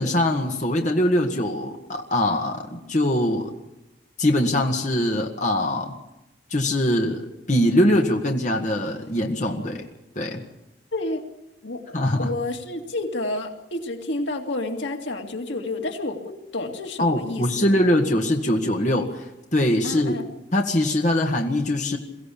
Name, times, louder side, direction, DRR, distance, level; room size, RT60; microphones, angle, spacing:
voice 1, 0.0-3.5 4.2-5.9 6.5-9.9 10.2-10.4 11.9-12.3 17.0-20.2 20.5-22.0, left 1 dB, 40° left, 2 dB, 1.8 m, -22 dB
voice 2, 11.6-17.4 19.8-20.3, left 2 dB, 90° left, 3 dB, 2.4 m, -30 dB
23.0 x 15.5 x 8.6 m, 0.95 s
head